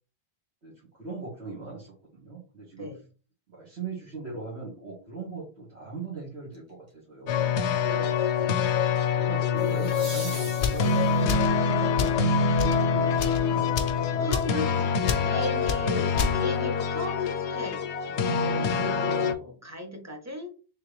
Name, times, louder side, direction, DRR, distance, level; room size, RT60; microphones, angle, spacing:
voice 1, 1.0-2.9 3.5-7.5 8.4-8.6 9.2-14.3 15.1-15.2 15.8-16.2 18.1-18.4, right 4 dB, 85° right, -6 dB, 1.8 m, -40 dB
sound 1, 6.5-6.9 9.6-11.4 14.3-14.4, right 1 dB, 35° right, 1.6 m, -41 dB
sound 2, 7.3-19.3, left 5 dB, 90° left, 0.9 m, -25 dB
voice 2, 7.8-8.3 14.2-17.9 18.4-20.5, left 1 dB, 15° right, 4 dB, 0.8 m, -37 dB
sound 3, 10.6-10.8 11.3-11.6 12.0-12.2 12.6-12.8 13.1-13.4 13.8-14.0 14.3-14.5 15.1-15.3 15.7-15.8 16.2-16.4, left 7 dB, 60° left, 0.7 m, -28 dB
3.5 x 3.3 x 3.2 m, 0.36 s
omnidirectional pair, 1.1 m